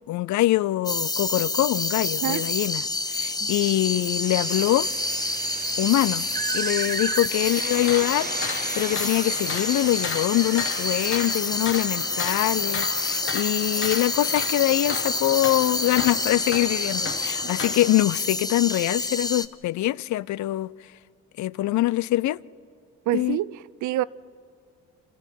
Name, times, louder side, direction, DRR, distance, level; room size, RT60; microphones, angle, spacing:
voice 1, 0.1-4.9 5.8-6.3 6.5-20.7 21.4-22.4 23.1-23.4, left 16 dB, 70° left, 0.5 m, -24 dB
sound 1, 0.8-19.5, left 2 dB, 15° left, 0.8 m, -28 dB
sound 2, 4.3-11.4, right 6 dB, 30° right, 0.7 m, -34 dB
sound 3, 7.7-18.0, left 5 dB, 40° left, 1.6 m, -35 dB
voice 2, 23.1-24.0, right 15 dB, 75° right, 0.5 m, -27 dB
27.0 x 13.5 x 9.2 m
cardioid pair, 90°, 30 cm